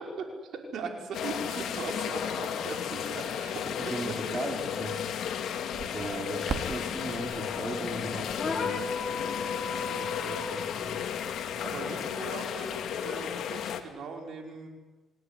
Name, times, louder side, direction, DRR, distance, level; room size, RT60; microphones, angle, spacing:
voice 1, 0.0-4.4 11.6-14.7, right 4 dB, 70° right, 3 dB, 5.2 m, -39 dB
sound 1, 1.1-13.8, left 8 dB, 70° left, 2.3 m, -34 dB
voice 2, 3.8-5.0 5.9-9.0 9.9-11.1, right 2 dB, 25° right, 3 dB, 4.2 m, -38 dB
Crackle, 5.7-12.2, right 5 dB, 55° right, 3.1 m, -44 dB
sound 2, 8.4-10.6, left 4 dB, 40° left, 5.0 m, -34 dB
27.0 x 16.5 x 10.0 m, 1.2 s
cardioid pair, 90°, 0 cm